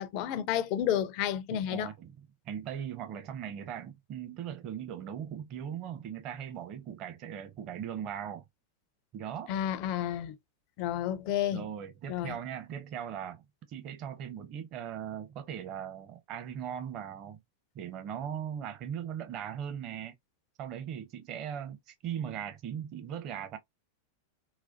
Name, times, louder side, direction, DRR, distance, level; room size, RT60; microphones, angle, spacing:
voice 1, 0.0-1.9 9.5-10.4 10.8-11.7 12.1-12.4, left 10 dB, 45° left, 0.5 m, -31 dB
voice 2, 1.5-2.1 2.4-8.4 9.1-9.5 11.5-13.4 13.7-17.4 17.7-20.1 20.6-23.6, right 9 dB, 40° right, 0.7 m, -39 dB
4.1 x 2.2 x 2.6 m
figure-of-eight pair, 90°, 0 cm